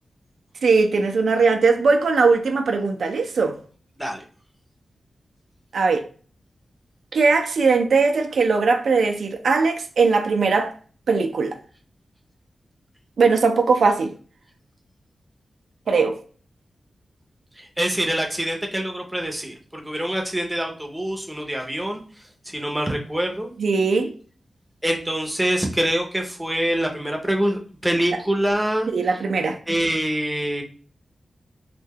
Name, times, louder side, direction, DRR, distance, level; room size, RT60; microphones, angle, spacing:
voice 1, 0.6-3.6 5.7-6.0 7.1-10.7 11.1-11.6 13.2-14.1 15.9-16.2 23.6-24.1 28.9-29.6, right 4 dB, 80° right, 0.3 m, -19 dB
voice 2, 17.6-22.0 22.5-23.5 24.8-29.2 29.7-30.6, right 1 dB, 5° right, 0.6 m, -25 dB
2.6 x 2.2 x 3.4 m
wide cardioid pair, 95°, 0 cm